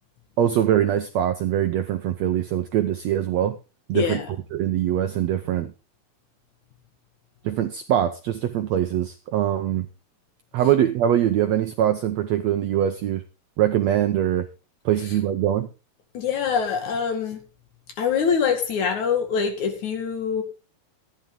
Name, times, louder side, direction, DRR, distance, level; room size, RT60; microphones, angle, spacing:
voice 1, 0.4-3.5 3.9-4.2 4.5-5.7 7.4-9.9 10.5-13.2 13.6-14.5 14.8-15.7, right 11 dB, 75° right, 1.6 m, -23 dB
voice 2, 3.9-4.2 16.1-17.4 18.0-20.4, left 6 dB, 60° left, 3.2 m, -24 dB
14.5 x 10.5 x 3.8 m
omnidirectional pair, 4.0 m